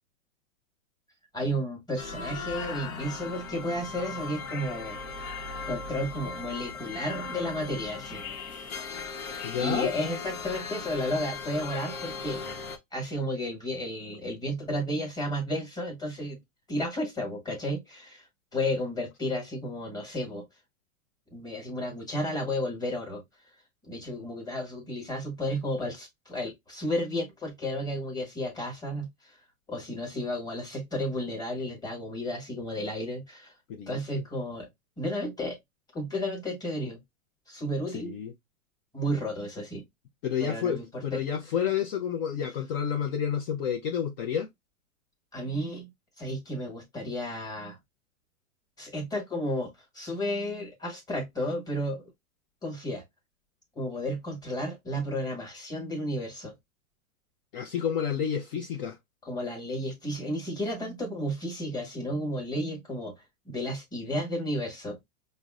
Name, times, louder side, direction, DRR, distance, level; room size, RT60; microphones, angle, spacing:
voice 1, 1.3-5.0 5.7-8.2 8.5-8.7 9.6-12.5 12.9-16.4 16.7-18.3 18.5-20.4 21.3-23.2 23.9-29.4 29.7-33.5 33.9-34.7 35.0-35.6 35.9-37.0 37.5-38.2 38.9-39.8 40.4-41.2 45.3-45.9 46.2-47.8 48.8-52.0 52.6-53.0 53.7-56.5 59.2-65.0, equal, 10° left, 1.2 m, -32 dB
sound 1, 2.0-12.8, left 5 dB, 70° left, 1.0 m, -38 dB
voice 2, 9.4-9.9 33.7-34.2 37.9-38.3 40.2-44.5 57.5-59.0, left 8 dB, 45° left, 0.5 m, -30 dB
5.0 x 2.1 x 2.3 m
hypercardioid pair, 130°, 43 cm